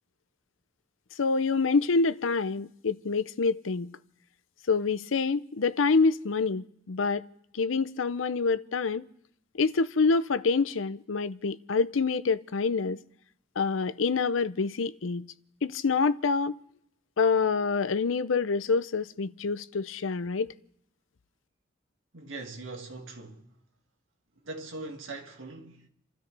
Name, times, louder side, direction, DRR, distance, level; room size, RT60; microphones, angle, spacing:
voice 1, 1.2-3.9 4.7-7.3 7.5-9.1 9.5-13.0 13.6-15.3 15.6-16.6 17.2-20.5, left 4 dB, 90° left, 0.6 m, -26 dB
voice 2, 22.1-23.5 24.4-25.9, right 2 dB, 85° right, 2.1 m, -41 dB
29.5 x 13.0 x 3.4 m
head